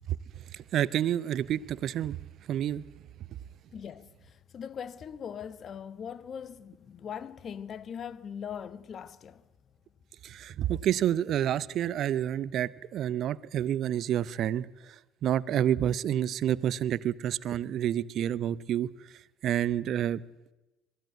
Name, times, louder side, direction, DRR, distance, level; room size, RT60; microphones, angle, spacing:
voice 1, 0.5-2.2 2.5-2.8 10.2-14.9 15.2-18.9 19.4-20.2, right 10 dB, 55° right, 0.6 m, -29 dB
voice 2, 3.7-9.4, left 8 dB, 45° left, 1.1 m, -41 dB
22.5 x 14.5 x 9.2 m
hypercardioid pair, 65°, 0 cm